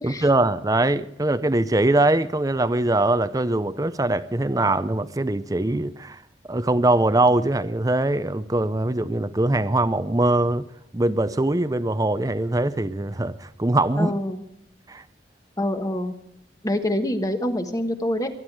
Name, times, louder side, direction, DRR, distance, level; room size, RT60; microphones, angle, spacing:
voice 1, 0.0-6.2 6.5-10.7 10.9-14.1 14.9-15.0, right 2 dB, 20° right, 14 dB, 0.6 m, -22 dB
voice 2, 14.0-14.4 15.6-16.1 16.6-18.3, left 1 dB, 20° left, 7 dB, 1.2 m, -26 dB
23.0 x 10.5 x 4.7 m, 0.74 s
head